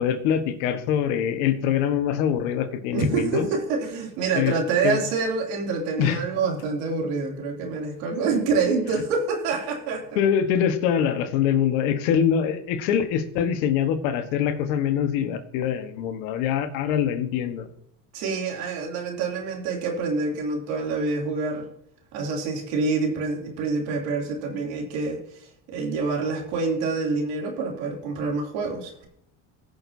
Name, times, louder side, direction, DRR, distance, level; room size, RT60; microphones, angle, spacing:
voice 1, 0.0-3.5 4.3-4.6 4.8-5.0 6.0-6.2 10.1-17.7, left 8 dB, 85° left, 8 dB, 1.4 m, -24 dB
voice 2, 2.9-10.0 18.1-21.7 22.1-29.1, right 4 dB, 85° right, 1 dB, 2.9 m, -26 dB
20.0 x 6.7 x 2.7 m, 0.70 s
cardioid pair, 115°, 38 cm